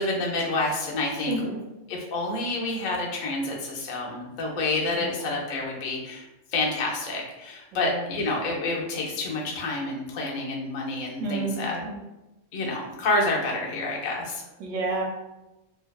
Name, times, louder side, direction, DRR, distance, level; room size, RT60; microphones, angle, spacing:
voice 1, 0.0-1.4 1.9-6.3 6.5-11.8 12.5-14.4, left 2 dB, 60° left, -2 dB, 0.5 m, -28 dB
voice 2, 1.3-1.6 4.9-5.3 7.7-8.0 11.2-11.9 14.6-15.0, right 3 dB, 80° right, -1 dB, 1.0 m, -30 dB
2.6 x 2.2 x 2.2 m, 0.99 s
omnidirectional pair, 1.3 m